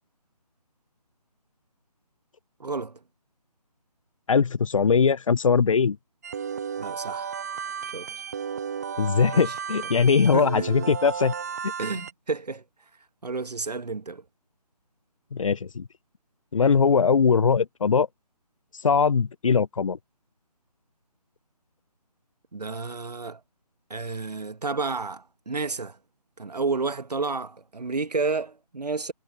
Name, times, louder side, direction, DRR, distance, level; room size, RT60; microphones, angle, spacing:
voice 1, 2.6-3.0 6.8-7.3 7.9-8.2 9.3-9.5 10.3-10.7 11.8-12.6 13.2-14.2 22.5-23.4 23.9-26.0 26.4-29.1, right 4 dB, 75° right, 1.2 m, -31 dB
voice 2, 4.3-6.0 9.0-11.3 11.6-11.7 15.3-15.9 16.5-18.1 18.8-20.0, left 5 dB, 50° left, 0.5 m, -21 dB
sound 1, 6.2-12.1, right 7 dB, 25° right, 0.6 m, -33 dB
figure-of-eight pair, 155°, 21 cm